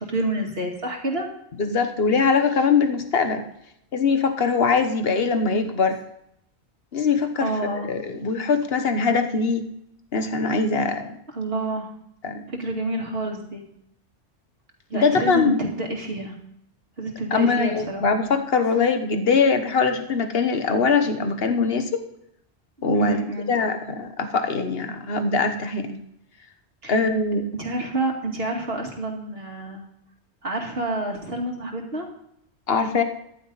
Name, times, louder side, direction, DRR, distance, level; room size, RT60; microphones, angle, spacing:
voice 1, 0.1-1.3 7.4-7.9 11.3-11.9 12.5-13.6 14.9-16.3 17.0-18.0 22.9-23.5 26.8-27.0 27.6-29.9 30.4-32.1, right 2 dB, 55° right, 1 dB, 2.6 m, -28 dB
voice 2, 1.6-3.4 3.9-6.0 6.9-9.7 10.1-11.2 12.2-12.4 14.9-15.5 17.3-22.0 22.8-23.2 23.5-26.0 26.9-27.4 32.7-33.0, left 4 dB, 60° left, 7 dB, 1.5 m, -22 dB
14.0 x 11.5 x 4.1 m, 0.75 s
omnidirectional pair, 1.2 m